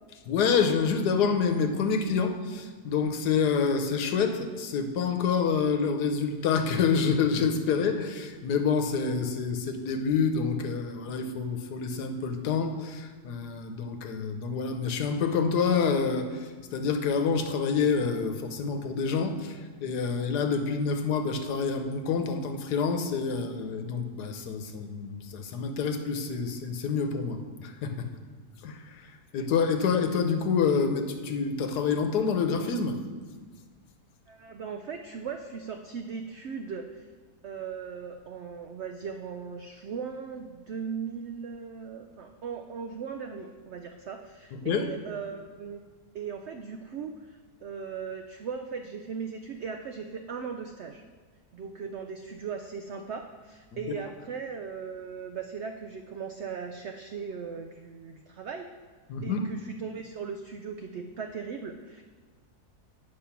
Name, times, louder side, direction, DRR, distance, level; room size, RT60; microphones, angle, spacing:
voice 1, 0.3-28.1 28.6-33.0 44.6-44.8 53.7-53.8 59.1-59.5, left 5 dB, 80° left, 6 dB, 1.3 m, -27 dB
voice 2, 34.3-37.1 37.4-45.8 46.1-51.0 51.5-58.7 59.2-62.1, right 6 dB, 85° right, 5 dB, 0.6 m, -38 dB
8.7 x 5.3 x 5.8 m, 1.5 s
omnidirectional pair, 1.7 m